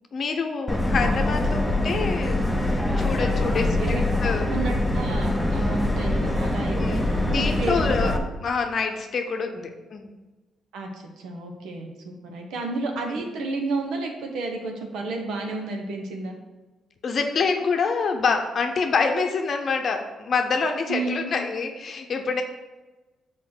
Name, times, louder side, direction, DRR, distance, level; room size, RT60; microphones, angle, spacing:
voice 1, 0.1-3.8 4.2-4.5 6.7-8.1 8.4-10.1 17.0-22.4, left 5 dB, 50° left, 4 dB, 0.7 m, -26 dB
Subway metro underground, 0.7-8.2, left 1 dB, 5° left, 0.8 m, -24 dB
voice 2, 3.6-8.1 10.7-16.4 20.9-21.3, right 3 dB, 80° right, 2 dB, 1.0 m, -32 dB
5.0 x 4.5 x 6.1 m, 1.2 s
cardioid pair, 90°, 0 cm